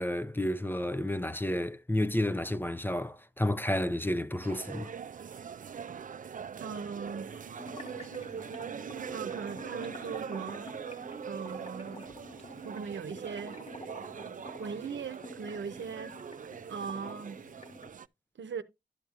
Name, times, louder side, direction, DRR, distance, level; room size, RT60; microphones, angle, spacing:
voice 1, 0.0-4.9, left 1 dB, 10° left, 0.5 m, -31 dB
sound 1, 4.4-18.1, right 7 dB, 45° right, 0.4 m, -42 dB
voice 2, 6.6-7.3 9.1-10.7 11.3-12.1 12.6-13.6 14.6-16.1 16.7-17.4 18.4-18.6, right 6 dB, 80° right, 0.7 m, -39 dB
sound 2, 7.3-17.9, left 1 dB, 35° left, 1.1 m, -48 dB
12.0 x 7.2 x 2.5 m
cardioid pair, 45°, 19 cm